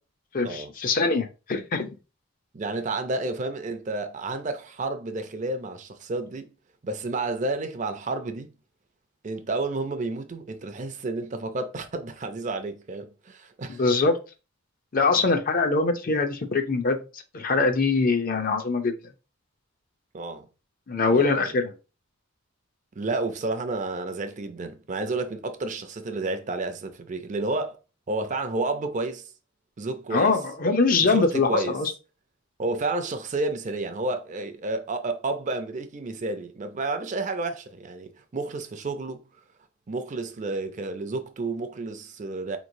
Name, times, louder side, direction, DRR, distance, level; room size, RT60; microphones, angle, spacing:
voice 1, 0.3-2.0 13.8-14.2 14.9-17.0 17.3-18.9 20.9-21.7 30.1-31.9, left 3 dB, 40° left, 0.5 m, -23 dB
voice 2, 2.5-6.5 6.8-8.5 9.2-13.8 20.1-20.5 21.1-21.5 23.0-27.8 28.1-29.3 29.8-30.4 31.0-31.8 32.6-39.2 39.9-42.6, right 2 dB, 35° right, 0.4 m, -31 dB
4.3 x 3.0 x 2.6 m
head